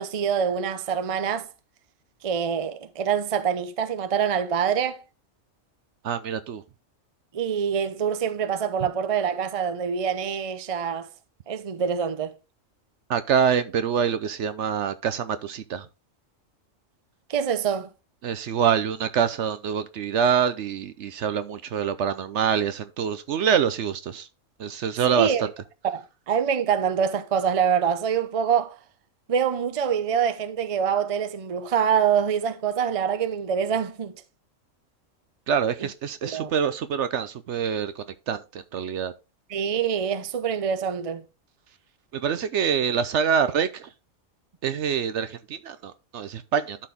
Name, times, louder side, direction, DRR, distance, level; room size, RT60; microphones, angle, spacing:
voice 1, 0.0-1.5 2.2-5.0 7.3-11.1 11.5-12.3 17.3-17.9 25.1-25.5 25.8-28.8 29.3-34.1 35.8-35.9 36.2-36.5 39.5-41.2, right 7 dB, 35° right, 0.6 m, -25 dB
voice 2, 6.0-6.6 13.1-15.8 18.2-24.2 24.6-25.3 35.5-37.9 38.3-38.4 38.7-39.1 42.2-43.7 44.6-45.3 45.6-46.8, right 7 dB, 65° right, 0.9 m, -25 dB
12.0 x 4.4 x 3.5 m
omnidirectional pair, 1.3 m